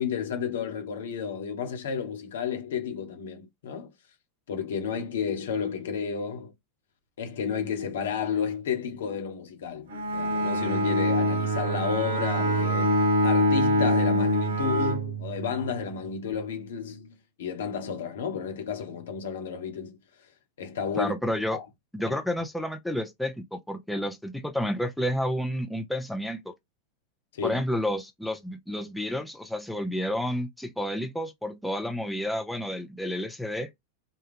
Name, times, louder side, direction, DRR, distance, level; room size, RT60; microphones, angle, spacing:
voice 1, 0.0-3.9 4.5-6.5 7.2-20.0 20.6-21.1 21.5-21.6 22.0-22.2 27.3-27.6, left 6 dB, 60° left, 1.0 m, -32 dB
Bowed string instrument, 9.9-15.7, equal, 55° right, 1.0 m, -25 dB
voice 2, 20.9-21.6 21.9-26.5 27.4-33.7, equal, ahead, 0.6 m, -30 dB
4.2 x 2.3 x 3.5 m
figure-of-eight pair, 90°, 0 cm